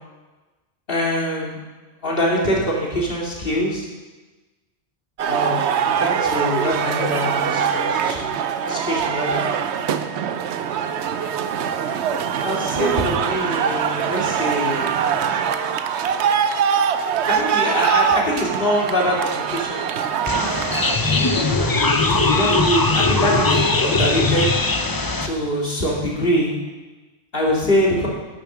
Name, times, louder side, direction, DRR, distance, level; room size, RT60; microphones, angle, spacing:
voice 1, 0.9-1.6 2.0-3.9 5.3-8.3 8.7-9.4 12.4-14.9 17.3-19.9 21.0-24.5 25.2-26.6 27.3-28.1, equal, 55° left, -3 dB, 2.6 m, -23 dB
sound 1, 5.2-21.0, right 7 dB, 90° right, 0.9 m, -23 dB
sound 2, 20.3-25.3, left 3 dB, 25° left, 0.6 m, -20 dB
11.0 x 7.0 x 6.0 m, 1.2 s
omnidirectional pair, 1.1 m